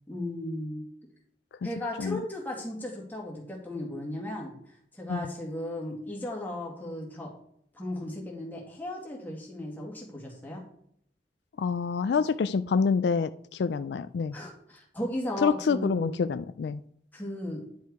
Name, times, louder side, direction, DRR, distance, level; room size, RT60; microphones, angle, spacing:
voice 1, 0.1-0.8 1.6-7.3 7.7-10.6 14.3-16.1 17.1-17.6, left 1 dB, 10° left, -2 dB, 2.1 m, -36 dB
voice 2, 11.6-14.4 15.4-16.8, left 5 dB, 75° left, 13 dB, 0.3 m, -27 dB
10.5 x 4.6 x 4.7 m, 0.69 s
head